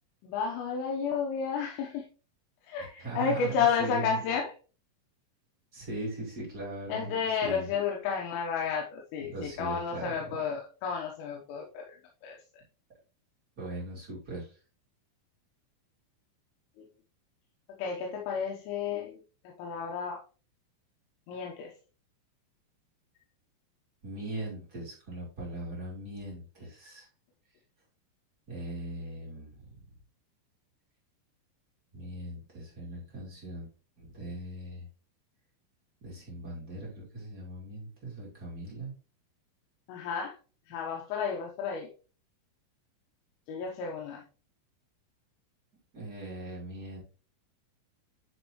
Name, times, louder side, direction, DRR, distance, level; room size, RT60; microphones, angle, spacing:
voice 1, 0.2-2.1 2.6-4.5 6.9-12.0 12.2-12.4 17.8-19.2 19.5-20.2 21.3-21.7 39.9-40.4 40.7-41.9 43.5-44.2, left 6 dB, 85° left, 0 dB, 3.6 m, -32 dB
voice 2, 2.8-4.2 5.7-7.7 9.2-10.2 13.6-14.6 24.0-27.1 28.5-29.8 31.9-33.7 34.0-34.9 36.0-38.9 45.9-47.0, right 2 dB, 25° right, -5 dB, 2.4 m, -40 dB
10.0 x 5.2 x 3.1 m, 0.35 s
omnidirectional pair, 5.8 m